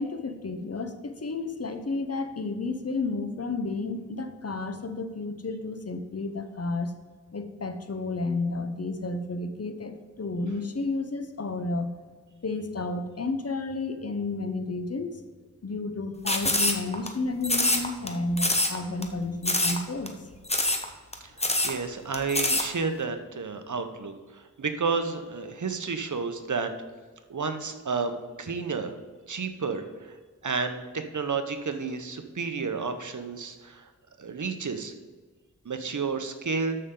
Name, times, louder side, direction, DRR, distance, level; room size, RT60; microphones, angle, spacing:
voice 1, 0.0-6.9 7.3-11.9 12.4-15.2 15.6-20.2, left 3 dB, 50° left, 8 dB, 0.9 m, -31 dB
sound 1, 16.3-17.1 17.4-18.1 18.4-18.8 19.0-19.1 19.4-19.8 20.1-20.2 20.5-20.8 21.1-21.2 21.4-21.7 22.1-22.6, left 2 dB, 20° left, 1.0 m, -24 dB
voice 2, 21.4-26.7 27.3-28.9 29.3-30.1 30.4-33.9 34.2-34.9 35.6-36.8, right 4 dB, 65° right, 8 dB, 0.9 m, -31 dB
13.0 x 5.7 x 3.8 m, 1.4 s
wide cardioid pair, 60°, 32 cm